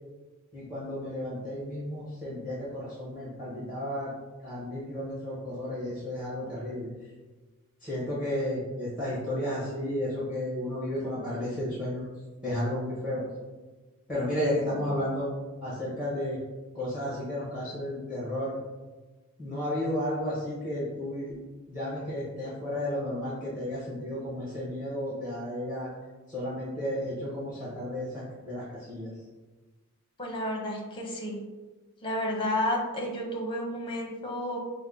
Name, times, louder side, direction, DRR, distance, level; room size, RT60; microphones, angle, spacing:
voice 1, 0.5-4.1 4.4-6.9 7.8-12.0 12.4-13.2 14.1-15.3 15.6-16.4 16.7-18.5 19.4-21.4 21.7-25.9 26.3-29.1, left 1 dB, 5° right, -8 dB, 1.2 m, -33 dB
voice 2, 30.2-31.4 32.0-34.6, left 1 dB, 25° left, 0 dB, 0.8 m, -31 dB
5.1 x 2.1 x 3.8 m, 1.3 s
head